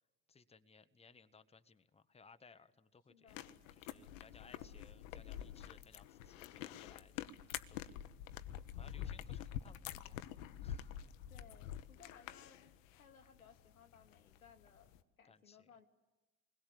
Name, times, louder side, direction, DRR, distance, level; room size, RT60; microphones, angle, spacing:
voice 1, 0.3-3.4 3.7-8.0 8.7-10.3 10.6-11.3 15.3-15.7, left 5 dB, 15° left, 11 dB, 1.1 m, -63 dB
voice 2, 3.1-3.5 4.4-4.7 11.3-15.9, left 6 dB, 90° left, 7 dB, 1.4 m, -63 dB
sound 1, 3.3-15.0, left 11 dB, 70° left, 1.0 m, -47 dB
28.5 x 21.0 x 8.4 m, 1.1 s
figure-of-eight pair, 60°, 41 cm